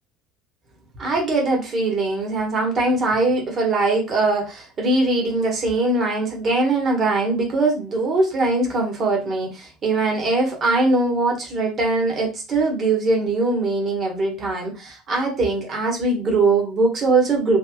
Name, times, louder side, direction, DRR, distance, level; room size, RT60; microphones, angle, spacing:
voice 1, 1.0-17.6, right 2 dB, 35° right, 0 dB, 1.3 m, -21 dB
3.2 x 3.1 x 2.3 m, 0.29 s
figure-of-eight pair, 65°, 0 cm